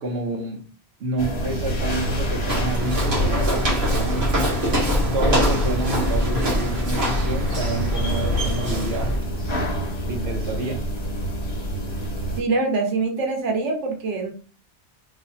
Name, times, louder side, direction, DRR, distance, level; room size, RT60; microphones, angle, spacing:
voice 1, 0.0-0.6 1.0-4.2 5.1-9.3 10.1-10.8, right 2 dB, 70° right, 1.1 m, -29 dB
sound 1, 1.2-12.4, equal, 70° left, 1.4 m, -27 dB
Walk footsteps, 2.5-9.2, equal, 50° right, 1.7 m, -24 dB
voice 2, 12.4-14.3, right 3 dB, 85° right, 1.2 m, -24 dB
3.9 x 2.8 x 2.7 m
omnidirectional pair, 1.2 m